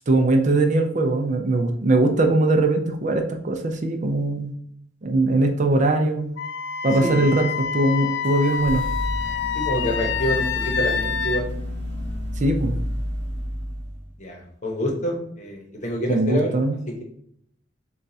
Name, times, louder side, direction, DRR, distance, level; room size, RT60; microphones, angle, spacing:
voice 1, 0.1-4.5 5.0-6.3 6.8-8.8 12.4-12.7 16.1-16.7, right 2 dB, 40° right, 5 dB, 0.5 m, -21 dB
Wind instrument woodwind instrument, 6.4-11.4, left 7 dB, 65° left, 0.3 m, -27 dB
sound 1, 8.2-14.1, left 1 dB, 70° right, 0.9 m, -30 dB
voice 2, 9.5-11.5 14.2-16.6 16.9-17.0, equal, 40° left, 1 dB, 0.9 m, -27 dB
7.0 x 2.3 x 2.7 m, 0.68 s
head